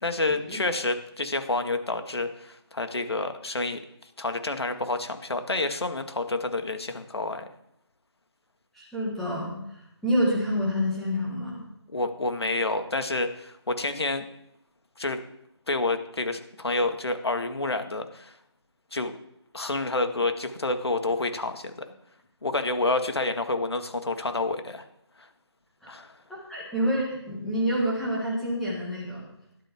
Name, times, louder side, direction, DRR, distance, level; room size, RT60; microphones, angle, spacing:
voice 1, 0.0-3.8 4.2-7.4 11.9-14.2 15.0-15.2 15.7-18.3 18.9-19.1 19.5-21.9 22.4-24.8 25.9-26.1, left 2 dB, 65° left, 7 dB, 1.9 m, -28 dB
voice 2, 8.8-11.6 25.8-25.9 26.3-29.2, equal, ahead, -6 dB, 2.0 m, -28 dB
15.5 x 12.0 x 3.7 m, 0.79 s
figure-of-eight pair, 170°, 15 cm